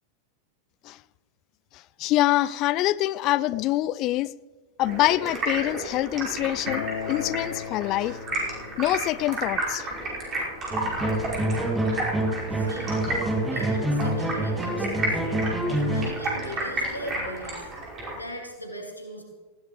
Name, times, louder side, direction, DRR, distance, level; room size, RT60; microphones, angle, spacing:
voice 1, 1.7-4.3 4.8-8.2 8.8-9.9, left 15 dB, 40° left, 0.3 m, -25 dB
Stream, 4.8-18.2, right 1 dB, 25° right, 5.3 m, -32 dB
Acoustic guitar, 6.7-11.9, left 8 dB, 60° left, 0.9 m, -39 dB
sound 1, 10.7-16.1, right 1 dB, 10° right, 2.6 m, -27 dB
voice 2, 12.5-15.2 15.7-17.7 18.1-19.2, equal, 85° left, 2.3 m, -39 dB
19.0 x 16.5 x 3.2 m
figure-of-eight pair, 90°, 0 cm